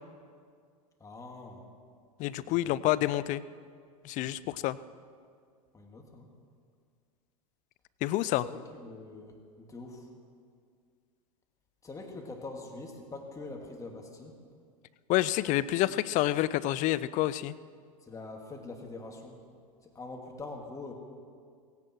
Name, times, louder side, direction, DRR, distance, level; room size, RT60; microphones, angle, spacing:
voice 1, 1.0-1.7 2.4-2.8 4.2-4.6 5.7-6.3 8.3-10.1 11.8-14.4 18.0-19.4 19.8-20.9, left 3 dB, 15° left, 2 dB, 2.5 m, -44 dB
voice 2, 2.2-3.4 4.0-4.8 8.0-8.4 15.1-17.5, left 15 dB, 40° left, 17 dB, 0.6 m, -28 dB
17.0 x 16.5 x 4.6 m, 2.1 s
hypercardioid pair, 100°, 19 cm